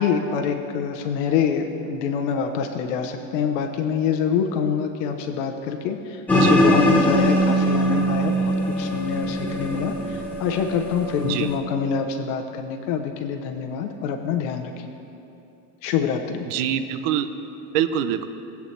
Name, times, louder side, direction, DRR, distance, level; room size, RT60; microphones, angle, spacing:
voice 1, 0.0-14.9 15.8-16.4, left 6 dB, 85° left, 4 dB, 1.0 m, -25 dB
sound 1, 6.3-11.6, equal, 5° left, 1.1 m, -22 dB
voice 2, 16.5-17.3 17.7-18.3, right 10 dB, 75° right, 10 dB, 0.7 m, -24 dB
20.5 x 8.1 x 3.3 m, 2.9 s
cardioid pair, 175°, 35 cm